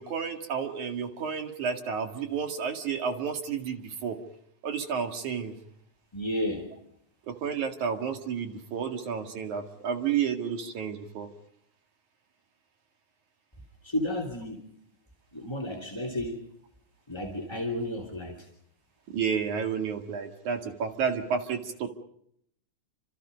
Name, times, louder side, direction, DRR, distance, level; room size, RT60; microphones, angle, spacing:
voice 1, 0.0-4.2 4.6-5.5 7.3-11.3 19.1-21.9, right 6 dB, 60° right, 6 dB, 3.3 m, -31 dB
voice 2, 6.1-6.7 13.8-14.7 15.3-16.4 17.1-18.5, left 1 dB, 10° left, 3 dB, 2.4 m, -32 dB
29.5 x 26.5 x 5.2 m, 0.71 s
omnidirectional pair, 4.1 m